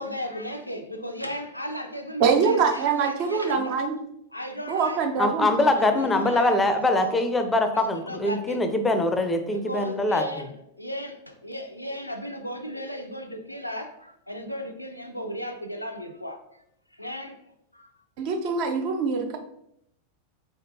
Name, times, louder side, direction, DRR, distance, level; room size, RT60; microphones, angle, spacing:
voice 1, 0.0-3.8 4.3-5.0 5.5-7.1 7.7-8.6 9.5-16.4 16.9-17.4 17.7-17.9, equal, 85° left, 5 dB, 0.4 m, -36 dB
voice 2, 2.2-3.9 4.7-5.5 18.2-19.4, right 5 dB, 45° right, 4 dB, 0.6 m, -24 dB
voice 3, 5.2-10.4, left 2 dB, 10° left, 7 dB, 0.5 m, -23 dB
3.8 x 3.4 x 2.6 m, 0.74 s
figure-of-eight pair, 90°, 0 cm